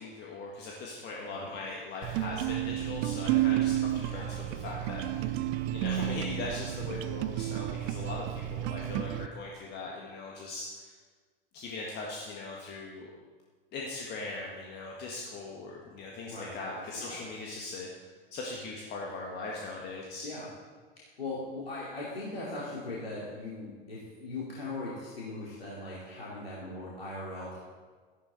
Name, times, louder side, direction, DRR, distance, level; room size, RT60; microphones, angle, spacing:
voice 1, 0.0-4.3 4.6-5.4 5.7-10.9 11.5-13.1 13.7-20.3, left 3 dB, 35° left, -2 dB, 1.8 m, -40 dB
sound 1, 2.0-9.3, right 13 dB, 40° right, 0.6 m, -31 dB
voice 2, 16.3-17.2 20.2-20.5 21.2-27.6, left 2 dB, 75° left, -6 dB, 2.8 m, -39 dB
14.0 x 11.0 x 4.2 m, 1.5 s
figure-of-eight pair, 85°, 30 cm